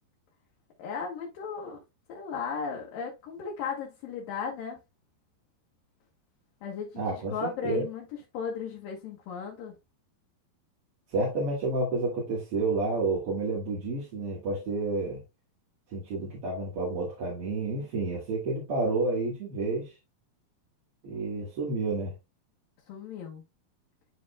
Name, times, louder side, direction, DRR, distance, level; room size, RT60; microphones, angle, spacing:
voice 1, 0.8-1.8 2.1-4.8 6.6-8.0 8.3-9.7 22.9-23.4, left 6 dB, 70° left, 3.0 m, -35 dB
voice 2, 7.0-7.9 11.1-15.2 15.9-19.9 21.0-22.1, right 3 dB, 40° right, 2.8 m, -30 dB
12.0 x 4.2 x 2.3 m
omnidirectional pair, 4.3 m